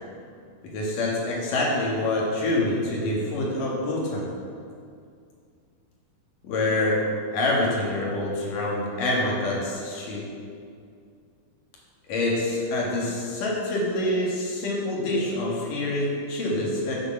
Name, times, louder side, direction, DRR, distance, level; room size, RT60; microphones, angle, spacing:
voice 1, 0.6-4.3 6.4-7.0 7.3-10.3 12.1-17.0, left 1 dB, 60° left, -4 dB, 3.2 m, -26 dB
9.0 x 6.6 x 7.3 m, 2.3 s
omnidirectional pair, 4.5 m